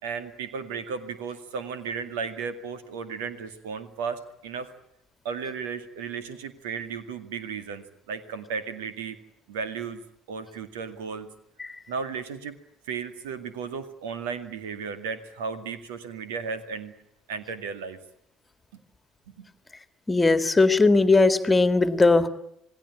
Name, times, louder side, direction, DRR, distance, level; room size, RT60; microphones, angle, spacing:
voice 1, 0.0-4.7 5.2-9.2 9.5-10.0 10.3-11.3 11.9-12.6 12.9-16.9 17.3-18.0 19.3-19.5, right 5 dB, 70° right, 11 dB, 2.1 m, -34 dB
voice 2, 20.1-22.3, left 3 dB, 15° left, 11 dB, 2.0 m, -19 dB
28.0 x 19.5 x 8.6 m, 0.77 s
figure-of-eight pair, 55°, 0 cm